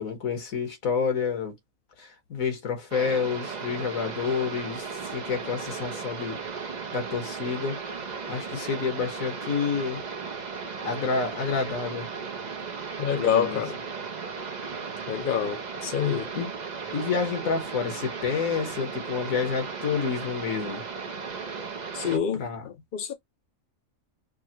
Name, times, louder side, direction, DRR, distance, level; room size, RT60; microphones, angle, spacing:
voice 1, 0.0-1.5 2.0-6.4 6.9-7.8 8.3-10.0 10.8-12.1 13.2-13.6 16.3-16.5 16.9-20.8 22.3-22.7, left 5 dB, 90° left, 1.6 m, -29 dB
sound 1, 2.9-22.2, right 5 dB, 40° right, 0.7 m, -36 dB
voice 2, 13.0-13.8 15.1-16.3 21.9-23.1, left 8 dB, 55° left, 0.6 m, -27 dB
5.4 x 2.2 x 2.8 m
omnidirectional pair, 1.4 m